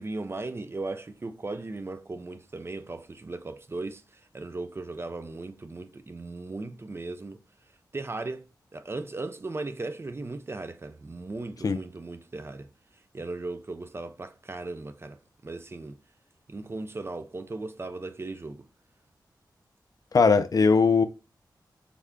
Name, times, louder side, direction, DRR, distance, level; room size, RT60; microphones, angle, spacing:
voice 1, 0.0-7.4 7.9-8.5 8.7-12.7 13.1-16.0 16.5-18.7, right 2 dB, 35° right, 0.4 m, -37 dB
voice 2, 20.1-21.1, left 5 dB, 50° left, 0.4 m, -20 dB
3.4 x 2.1 x 3.6 m
cardioid pair, 55°, 8 cm